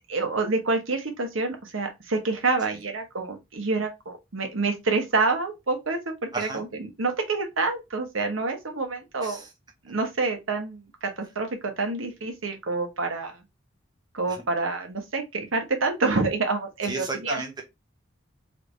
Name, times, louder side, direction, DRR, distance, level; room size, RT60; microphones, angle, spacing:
voice 1, 0.1-9.4 9.8-13.4 14.1-17.4, right 3 dB, 85° right, 1.0 m, -27 dB
voice 2, 6.3-6.6 9.2-9.5 14.3-14.4 16.8-17.6, right 3 dB, 20° right, 0.6 m, -33 dB
3.2 x 2.6 x 3.2 m
head